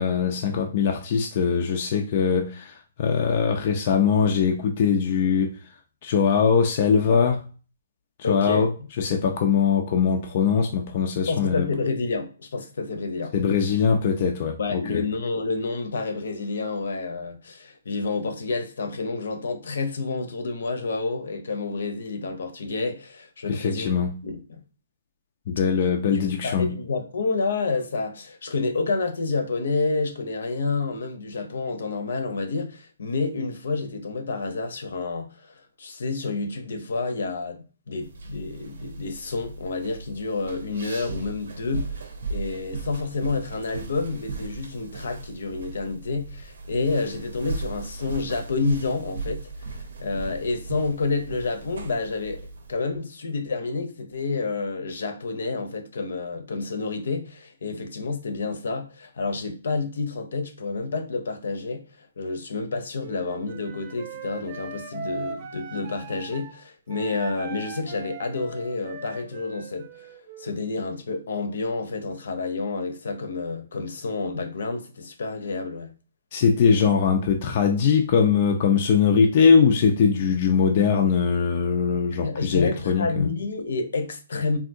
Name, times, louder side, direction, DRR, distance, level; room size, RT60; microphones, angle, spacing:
voice 1, 0.0-5.6 6.0-7.4 8.2-8.7 9.0-11.7 13.3-15.0 23.5-24.2 25.5-26.7 76.3-83.3, left 6 dB, 35° left, 0.3 m, -21 dB
voice 2, 8.2-8.7 11.3-13.3 14.6-24.0 24.2-24.6 26.1-35.4 35.8-42.0 42.3-49.4 50.0-52.4 52.7-75.9 82.2-84.6, left 3 dB, 65° left, 0.7 m, -29 dB
sound 1, 38.0-52.7, right 3 dB, 65° right, 0.7 m, -37 dB
Wind instrument woodwind instrument, 63.0-66.6 66.9-70.6, right 5 dB, 25° right, 0.5 m, -40 dB
3.5 x 2.6 x 2.6 m
hypercardioid pair, 170°, 0 cm